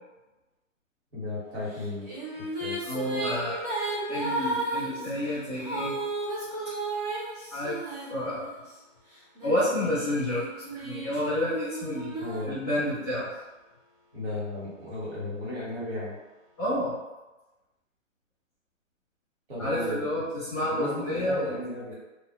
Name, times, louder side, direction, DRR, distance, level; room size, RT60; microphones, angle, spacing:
voice 1, 1.1-2.1 2.4-2.8 12.2-12.6 14.1-16.1 19.5-20.2 20.7-21.9, left 1 dB, 45° right, -7 dB, 1.3 m, -35 dB
Female singing, 1.7-8.7 9.4-13.1, right 2 dB, 30° right, 0.7 m, -34 dB
voice 2, 2.9-3.6 4.1-5.9 7.5-7.8 8.1-8.6 9.4-10.4 10.7-13.3 16.6-17.0 19.6-20.2 20.5-21.9, left 1 dB, 10° left, -15 dB, 0.5 m, -29 dB
2.4 x 2.1 x 2.4 m, 1.1 s
hypercardioid pair, 150°, 40 cm